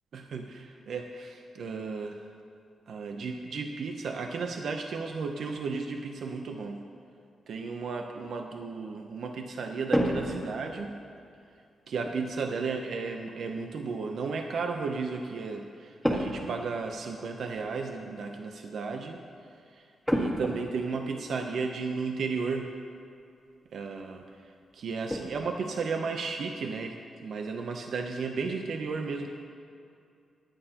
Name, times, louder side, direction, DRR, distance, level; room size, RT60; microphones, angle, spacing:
voice 1, 0.1-2.2 2.9-6.8 7.5-11.0 11.9-19.2 19.7-22.7 23.7-27.0 27.2-29.3, right 4 dB, 70° right, 4 dB, 0.6 m, -34 dB
sound 1, 9.9-11.1 12.0-12.2 16.0-16.5 16.8-16.9 17.5-17.7 20.0-21.0 22.4-22.5 23.0-23.1 23.5-23.7 24.1-24.2 24.6-25.4, equal, ahead, 1.7 m, -30 dB
21.5 x 8.9 x 2.9 m, 2.5 s
cardioid pair, 90°, 0 cm